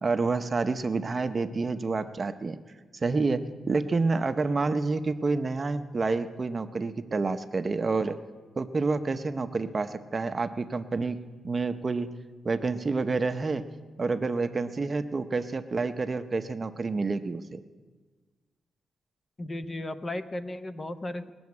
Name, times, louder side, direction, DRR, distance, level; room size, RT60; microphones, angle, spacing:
voice 1, 0.0-2.6 3.0-3.4 3.7-8.2 8.6-11.2 11.4-12.1 12.4-13.6 14.0-17.6, right 3 dB, 30° right, 9 dB, 0.7 m, -28 dB
voice 2, 19.4-21.3, left 1 dB, 25° left, 10 dB, 0.7 m, -35 dB
20.5 x 7.0 x 9.5 m, 1.3 s
wide cardioid pair, 135°, 0 cm